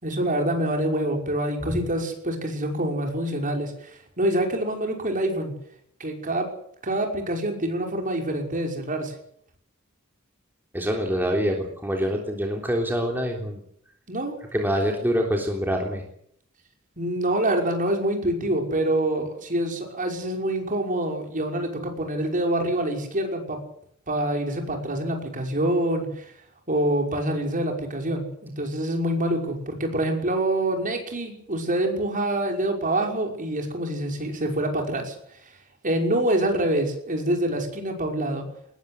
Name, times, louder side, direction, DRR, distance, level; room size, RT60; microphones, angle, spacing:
voice 1, 0.0-5.5 6.0-6.5 6.8-9.1 14.1-14.3 17.0-23.6 24.1-26.3 26.7-35.2 35.8-38.5, right 1 dB, 40° right, 2 dB, 5.8 m, -26 dB
voice 2, 10.7-13.6 14.5-16.0, equal, 10° right, 1 dB, 3.4 m, -25 dB
20.5 x 20.5 x 7.9 m, 0.68 s
head